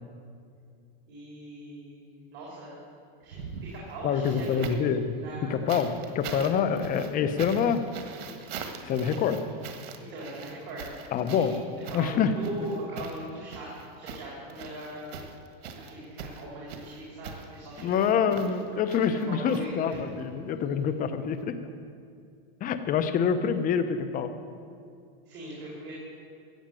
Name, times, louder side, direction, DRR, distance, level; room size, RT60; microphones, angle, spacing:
voice 1, 1.1-2.0 2.3-2.8 3.2-4.6 5.2-5.7 6.3-6.5 10.1-10.8 11.2-13.7 14.0-15.2 15.8-18.1 19.3-20.1 25.2-26.0, right 1 dB, 45° right, -6 dB, 4.2 m, -40 dB
sound 1, 3.2-5.0 5.7-20.2 21.3-21.4, right 6 dB, 85° right, 1.7 m, -43 dB
voice 2, 4.0-5.2 5.5-7.9 8.9-9.4 11.1-11.6 11.9-12.3 17.8-21.6 22.6-24.3, left 7 dB, 30° left, 10 dB, 0.9 m, -26 dB
14.5 x 8.7 x 7.7 m, 2.3 s
supercardioid pair, 140°, 29 cm